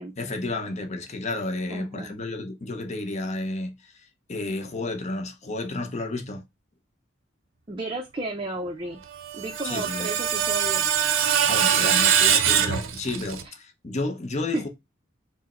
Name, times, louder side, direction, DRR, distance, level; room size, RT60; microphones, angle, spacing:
voice 1, 0.2-3.7 4.3-6.4 9.6-10.1 11.5-14.7, left 2 dB, 35° left, 0.7 m, -31 dB
voice 2, 1.7-2.1 7.7-9.0 9.3-10.9 11.7-12.0 13.4-13.5 14.5-14.7, right 2 dB, 25° right, 0.5 m, -33 dB
Screech, 9.1-13.4, right 8 dB, 90° right, 0.7 m, -23 dB
4.5 x 2.1 x 4.2 m
head